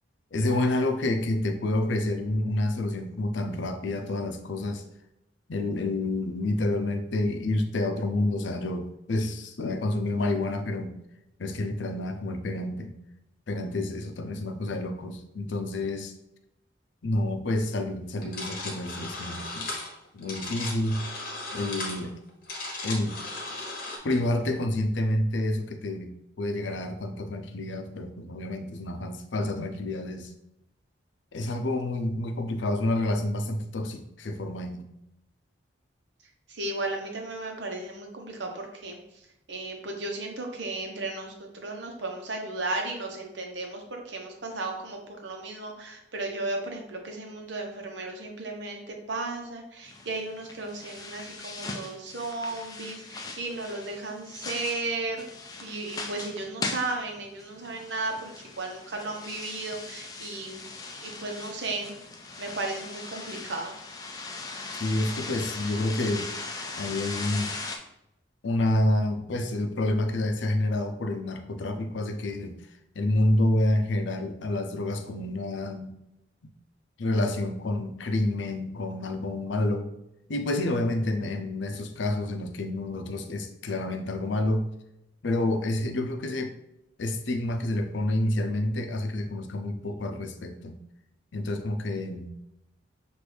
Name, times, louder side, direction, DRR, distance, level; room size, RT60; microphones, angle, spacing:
voice 1, 0.3-4.8 5.5-10.9 11.4-12.9 13.5-16.1 17.0-19.8 20.1-21.1 21.5-22.2 22.8-23.2 24.0-26.1 26.4-30.3 31.3-34.8 64.8-66.3 66.8-67.5 68.4-72.5 73.0-75.9 77.0-79.9 80.3-84.7 85.2-86.5 87.0-90.8 91.3-92.3, left 1 dB, 75° left, 7 dB, 0.6 m, -28 dB
sound 1, 18.2-24.0, left 2 dB, 45° left, 1.0 m, -36 dB
voice 2, 36.5-39.0 39.5-55.2 55.6-58.3 58.6-60.6 61.0-62.0 62.4-63.7, right 2 dB, 70° right, 2 dB, 0.9 m, -35 dB
sound 2, 49.8-67.8, left 3 dB, 20° left, 0.4 m, -39 dB
6.1 x 2.6 x 3.3 m, 0.84 s
head